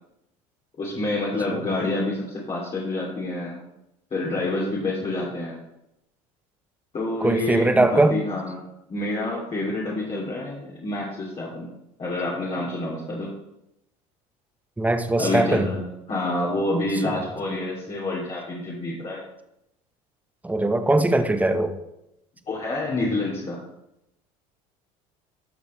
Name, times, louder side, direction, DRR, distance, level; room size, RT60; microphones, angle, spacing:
voice 1, 0.8-3.6 4.1-5.6 6.9-8.6 8.9-11.7 12.0-13.3 15.2-19.2 22.5-23.6, left 2 dB, 35° left, -5 dB, 2.7 m, -28 dB
voice 2, 7.2-8.2 14.8-15.7 17.0-17.2 20.4-21.7, right 2 dB, 10° right, 8 dB, 0.9 m, -21 dB
12.5 x 6.2 x 3.1 m, 0.86 s
hypercardioid pair, 85°, 18 cm